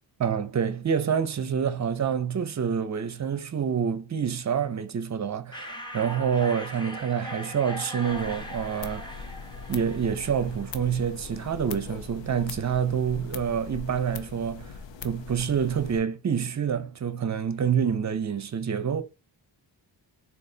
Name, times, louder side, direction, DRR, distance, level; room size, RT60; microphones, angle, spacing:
voice 1, 0.2-9.1 9.7-14.7 15.0-19.0, right 7 dB, 40° right, 0.6 m, -27 dB
sound 1, 5.5-11.0, equal, 10° left, 0.9 m, -40 dB
sound 2, 8.0-16.0, left 5 dB, 80° left, 0.6 m, -41 dB
3.9 x 2.5 x 3.8 m
wide cardioid pair, 95°, 44 cm